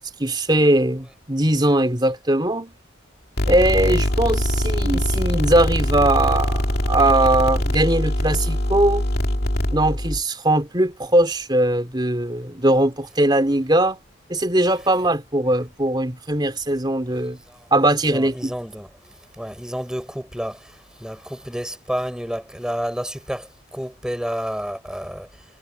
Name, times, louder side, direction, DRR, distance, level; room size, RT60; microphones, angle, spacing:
voice 1, 0.2-2.7 3.4-9.0 9.7-14.0 14.3-17.4 17.7-18.5, right 1 dB, 20° right, 3.5 m, -20 dB
sound 1, 3.4-10.2, left 1 dB, 50° left, 2.6 m, -22 dB
voice 2, 18.1-25.4, equal, 5° right, 4.8 m, -30 dB
head